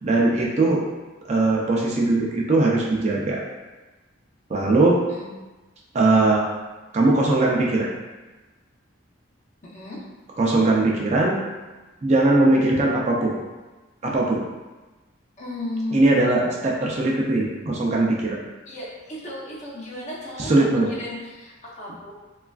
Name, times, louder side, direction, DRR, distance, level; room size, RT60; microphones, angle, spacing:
voice 1, 0.0-0.8 1.2-3.4 4.5-5.0 5.9-6.4 6.9-7.9 10.4-11.4 12.0-13.3 14.0-14.4 15.9-18.4 20.4-20.9, right 2 dB, 35° right, -3 dB, 0.3 m, -20 dB
voice 2, 9.6-10.0 15.4-16.0 18.7-22.1, left 1 dB, 35° left, -5 dB, 0.6 m, -35 dB
3.2 x 2.3 x 2.3 m, 1.2 s
head